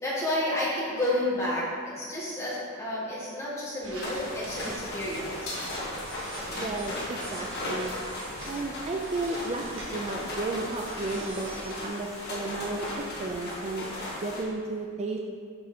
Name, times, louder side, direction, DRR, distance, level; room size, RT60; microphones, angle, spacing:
voice 1, 0.0-5.5, left 1 dB, 15° left, -7 dB, 1.6 m, -30 dB
sound 1, 3.8-11.9, right 2 dB, 65° right, 0.9 m, -44 dB
sound 2, 4.0-14.4, left 1 dB, 50° left, 1.4 m, -36 dB
voice 2, 6.6-8.0 8.5-13.8 14.2-15.2, right 2 dB, 30° right, 1 dB, 0.4 m, -33 dB
6.0 x 4.5 x 4.3 m, 2.1 s
head